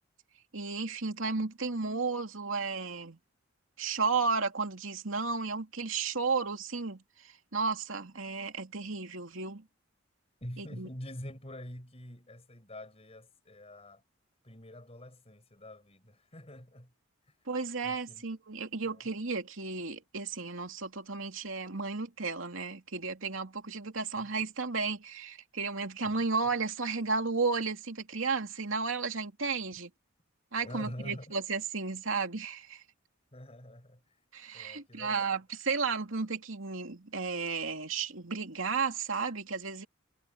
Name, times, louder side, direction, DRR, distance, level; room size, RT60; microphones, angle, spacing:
voice 1, 0.5-3.2 3.8-9.6 10.6-10.9 17.5-29.9 30.5-32.8 34.3-39.9, right 4 dB, 80° right, 2.7 m, -33 dB
voice 2, 10.4-14.0 14.4-16.9 17.8-18.2 24.2-24.3 26.0-26.3 30.6-31.3 33.3-34.1 34.5-35.3, left 1 dB, 30° left, 5.6 m, -46 dB
head